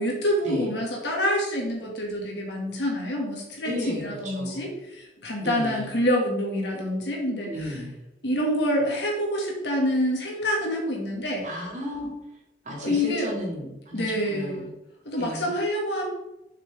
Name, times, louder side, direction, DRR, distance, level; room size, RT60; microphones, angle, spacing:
voice 1, 0.0-7.7 8.2-11.5 12.8-13.3 13.9-14.7 15.1-16.1, equal, 80° left, 0 dB, 2.1 m, -27 dB
voice 2, 3.6-4.7 5.4-5.9 7.4-7.9 11.4-12.1 12.6-14.7 15.2-15.5, equal, 45° right, -2 dB, 2.1 m, -34 dB
7.5 x 6.1 x 3.6 m, 0.91 s
head